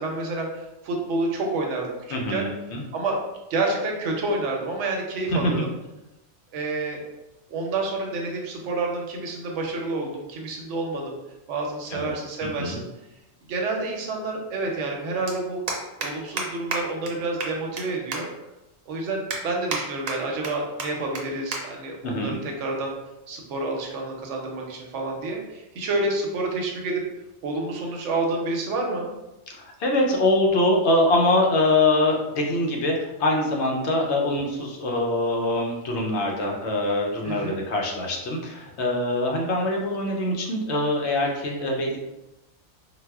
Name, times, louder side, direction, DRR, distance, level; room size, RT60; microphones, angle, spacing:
voice 1, 0.0-2.5 2.9-3.2 3.5-5.7 6.5-7.0 7.5-11.2 11.5-12.8 13.5-15.7 16.0-18.3 18.9-22.9 23.3-27.0 27.4-29.1 37.2-37.6, right 2 dB, 85° right, 1 dB, 1.0 m, -29 dB
voice 2, 2.1-2.8 5.3-5.6 11.9-12.1 12.4-12.8 22.0-22.4 29.5-42.0, left 1 dB, 70° left, 0 dB, 0.9 m, -24 dB
sound 1, 15.3-15.4 15.7-16.1 16.4-16.5 16.7-16.8 17.1-17.2 17.4-17.8 18.1-18.2 18.7-18.8 19.3-19.8 20.1-20.5 20.8-20.9 21.1-21.2 21.5-21.6 21.9-22.2 22.9-23.2, right 3 dB, 60° right, 0.7 m, -29 dB
4.0 x 2.1 x 2.3 m, 0.97 s
omnidirectional pair, 1.2 m